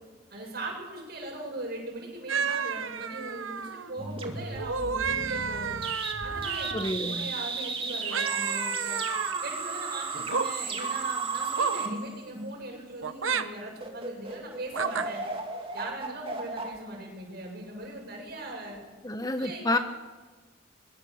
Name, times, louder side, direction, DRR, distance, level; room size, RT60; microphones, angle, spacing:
voice 1, 0.3-5.7 6.2-6.7 7.1-9.0 9.4-15.3 15.7-18.8 19.4-19.8, right 2 dB, 50° right, 0 dB, 7.7 m, -40 dB
sound 1, 2.3-3.9 4.5-6.9 8.1-9.5 10.1-10.5 11.6-11.8 13.0-13.5 14.7-15.1, right 5 dB, 85° right, 1.0 m, -31 dB
sound 2, 4.0-12.8 13.4-13.5 13.8-17.7, right 4 dB, 30° right, 2.5 m, -34 dB
voice 2, 6.7-7.3 19.0-19.8, left 2 dB, 20° left, 8 dB, 1.0 m, -29 dB
23.0 x 22.0 x 7.2 m, 1.3 s
head